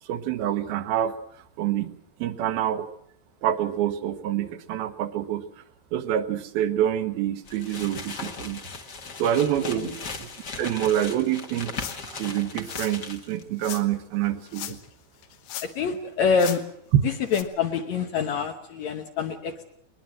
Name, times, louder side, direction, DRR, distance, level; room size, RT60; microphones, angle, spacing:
voice 1, 0.1-1.2 1.6-1.9 2.2-2.9 3.4-5.4 5.9-8.6 9.2-10.3 10.6-14.8, right 11 dB, 80° right, 9 dB, 3.0 m, -27 dB
sound 1, 7.5-13.4, left 4 dB, 45° left, 1.3 m, -38 dB
sound 2, 11.7-12.1 12.6-13.0 13.6-13.8 14.5-14.9 15.2-15.9 16.3-16.6 17.3-17.4, left 11 dB, 85° left, 3.2 m, -37 dB
voice 2, 15.6-16.6 17.3-19.7, left 5 dB, 65° left, 6 dB, 1.9 m, -26 dB
21.0 x 20.5 x 7.5 m, 0.70 s
omnidirectional pair, 4.3 m